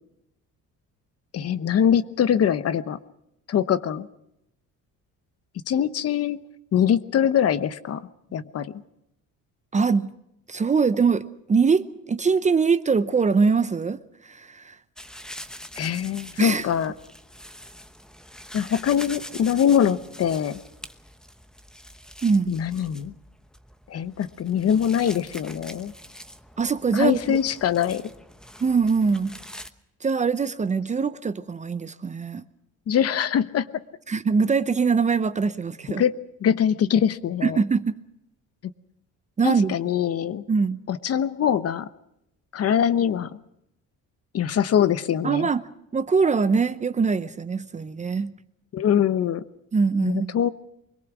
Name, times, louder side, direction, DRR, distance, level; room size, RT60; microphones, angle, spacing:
voice 1, 1.3-3.0 3.5-4.1 5.7-6.4 6.7-8.7 15.8-16.9 18.5-20.6 22.5-23.1 23.9-25.9 26.9-28.0 32.9-33.7 35.9-36.1 36.4-37.6 39.4-40.4 40.9-41.9 42.5-43.3 44.3-45.5 48.7-49.4 50.0-50.5, left 9 dB, 45° left, 1.0 m, -23 dB
voice 2, 9.7-10.1 10.5-14.7 16.4-16.7 22.2-22.6 26.6-27.4 28.6-29.4 30.0-32.4 34.1-36.0 37.4-37.9 39.4-39.8 40.5-40.8 45.2-45.6 45.9-48.4 49.7-50.4, right 5 dB, 20° right, 0.7 m, -23 dB
sound 1, 15.0-29.7, equal, ahead, 1.0 m, -44 dB
24.5 x 22.0 x 6.1 m
cardioid pair, 145°, 33 cm